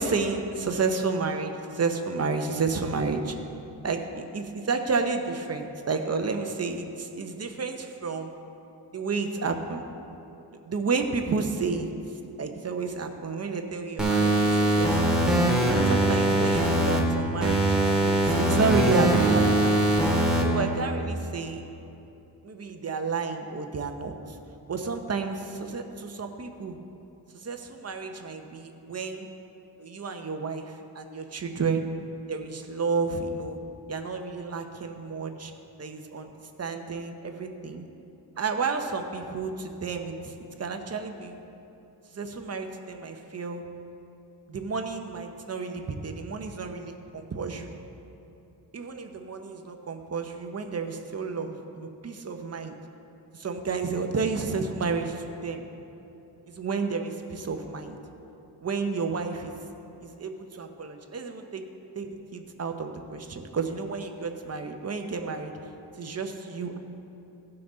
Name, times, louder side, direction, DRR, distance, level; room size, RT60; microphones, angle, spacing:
voice 1, 0.0-3.3 3.8-8.3 8.9-9.8 10.5-11.9 12.4-15.3 15.9-19.8 20.4-21.6 22.4-24.4 24.7-26.8 27.3-29.3 29.8-31.9 32.3-33.6 33.9-35.5 35.8-36.3 36.6-37.9 38.4-41.4 42.1-43.6 44.5-47.8 48.7-52.8 53.3-55.6 56.5-58.0 58.6-59.5 60.0-61.7 61.9-65.6 66.0-66.8, right 4 dB, 35° right, 5 dB, 0.8 m, -31 dB
sound 1, 14.0-17.0 17.4-20.4, right 1 dB, ahead, 1.9 m, -22 dB
17.0 x 5.9 x 3.8 m, 2.9 s
wide cardioid pair, 120°, 42 cm